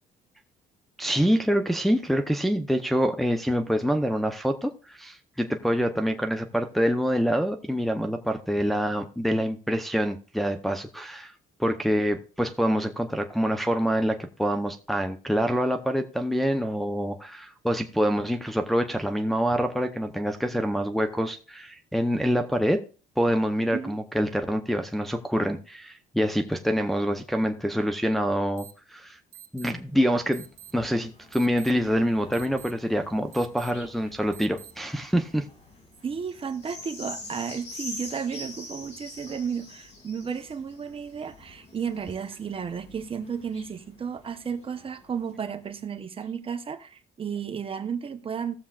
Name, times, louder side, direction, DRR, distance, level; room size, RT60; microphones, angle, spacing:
voice 1, 1.0-11.3 11.6-22.8 23.2-29.2 29.5-30.4 30.7-35.5, equal, ahead, 0.7 m, -26 dB
sound 1, 28.6-28.7 29.3-29.7 30.3-30.7 31.3-31.7 32.3-32.7 33.3-33.7 34.3-34.7, right 11 dB, 55° right, 1.8 m, -46 dB
sound 2, 29.8-45.6 46.2-46.3, left 2 dB, 40° left, 2.9 m, -46 dB
voice 2, 36.0-48.6, right 7 dB, 35° right, 0.9 m, -33 dB
18.0 x 7.2 x 2.4 m
cardioid pair, 110°, 17 cm